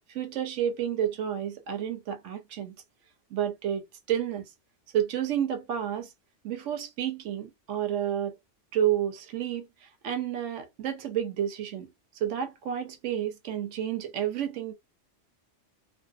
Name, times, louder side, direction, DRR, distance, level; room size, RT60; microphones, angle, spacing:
voice 1, 0.1-2.7 3.3-4.4 4.9-6.1 6.4-8.3 8.7-9.7 10.0-11.9 12.2-14.7, right 10 dB, 80° right, 0.9 m, -30 dB
2.6 x 2.1 x 2.3 m
omnidirectional pair, 1.2 m